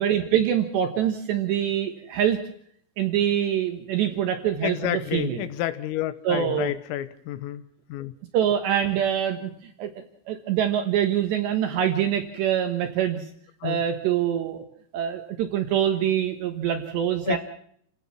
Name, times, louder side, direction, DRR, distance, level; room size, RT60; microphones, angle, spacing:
voice 1, 0.0-2.4 3.0-5.5 6.2-6.7 8.3-9.9 10.3-13.2 13.6-14.6 14.9-17.4, right 10 dB, 70° right, 6 dB, 3.2 m, -25 dB
voice 2, 4.6-7.6 7.9-8.1 13.6-13.8 17.3-17.4, left 12 dB, 90° left, 12 dB, 3.8 m, -29 dB
29.0 x 17.0 x 6.0 m, 0.65 s
omnidirectional pair, 5.9 m